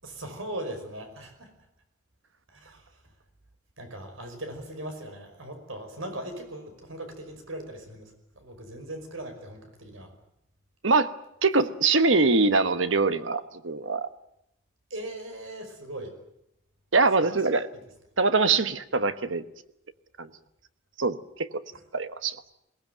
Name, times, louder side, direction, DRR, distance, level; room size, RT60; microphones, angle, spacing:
voice 1, 0.0-1.5 2.5-3.0 3.8-10.1 14.9-16.2 17.2-17.4 17.7-17.8, right 1 dB, 90° right, 6 dB, 5.3 m, -39 dB
voice 2, 11.4-14.1 16.9-17.7 18.2-19.4 20.2-20.3 21.0-21.6 21.9-22.4, right 3 dB, 70° right, 12 dB, 1.2 m, -23 dB
22.0 x 19.0 x 9.2 m, 0.80 s
head